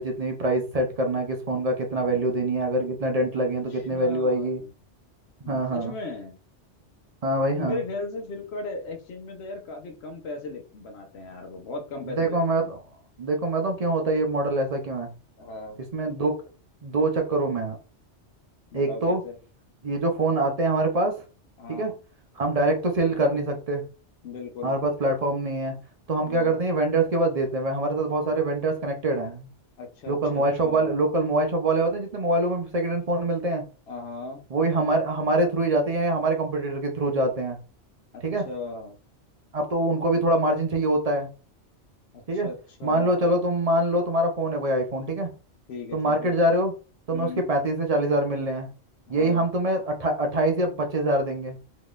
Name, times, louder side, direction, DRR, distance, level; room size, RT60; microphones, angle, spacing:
voice 1, 0.0-4.6 5.5-5.9 7.2-7.8 12.1-12.8 13.2-15.1 15.9-16.4 16.8-17.8 18.7-19.2 19.8-21.1 21.7-21.9 22.4-23.8 24.6-25.8 26.1-29.5 30.1-33.7 34.5-37.6 38.2-38.5 39.5-41.3 42.3-42.5 42.8-45.3 45.9-46.8 47.1-48.7 49.1-51.6, right 2 dB, 40° right, 4 dB, 0.6 m, -24 dB
voice 2, 3.7-4.7 5.4-6.4 7.5-12.7 15.4-15.8 18.7-19.4 21.6-21.9 24.2-24.8 26.2-26.6 29.8-31.0 33.9-34.4 38.1-39.0 42.1-43.3 45.7-46.3 47.1-47.5 49.1-49.5, left 3 dB, 65° left, 3 dB, 1.0 m, -37 dB
3.6 x 3.0 x 2.4 m, 0.35 s
omnidirectional pair, 1.2 m